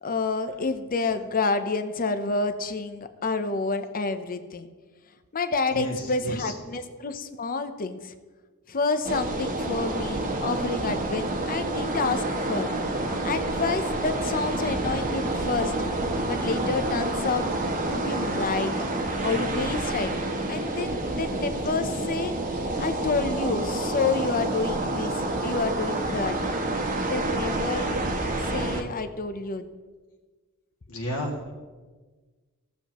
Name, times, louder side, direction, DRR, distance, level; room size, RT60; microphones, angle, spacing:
voice 1, 0.0-4.7 5.3-8.1 8.7-12.7 13.2-15.7 16.3-17.5 17.9-18.7 19.2-20.1 20.5-22.3 22.8-26.3 27.1-27.9 28.5-29.7, left 4 dB, 40° left, 9 dB, 0.7 m, -29 dB
voice 2, 5.7-6.5 22.7-22.8 30.9-31.5, equal, 80° left, -1 dB, 2.3 m, -33 dB
sound 1, 9.0-28.8, right 2 dB, 40° right, 1.1 m, -28 dB
17.5 x 7.1 x 3.0 m, 1.4 s
head